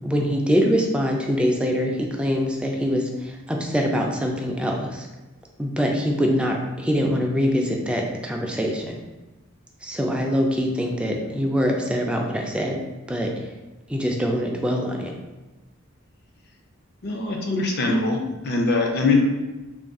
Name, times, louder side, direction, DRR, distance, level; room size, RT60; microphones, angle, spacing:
voice 1, 0.0-5.1 5.6-9.0 9.8-12.8 13.1-13.3 13.9-15.1, equal, 5° right, 1 dB, 0.3 m, -24 dB
voice 2, 17.0-19.2, left 3 dB, 50° left, 1 dB, 0.5 m, -22 dB
2.4 x 2.3 x 3.6 m, 1.1 s
head